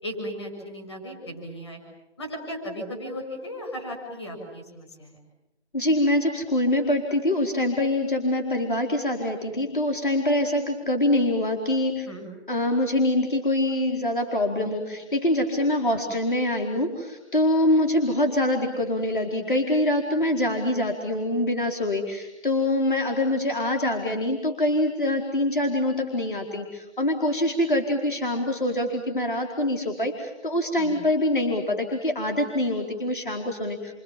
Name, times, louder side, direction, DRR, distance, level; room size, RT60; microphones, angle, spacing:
voice 1, 0.0-1.8 2.2-5.2 12.1-12.2 30.8-31.0, equal, 25° left, 3 dB, 7.0 m, -36 dB
voice 2, 5.7-12.1 12.5-33.9, left 1 dB, 45° left, 3 dB, 4.5 m, -24 dB
28.5 x 26.5 x 7.6 m, 0.94 s
figure-of-eight pair, 180°, 34 cm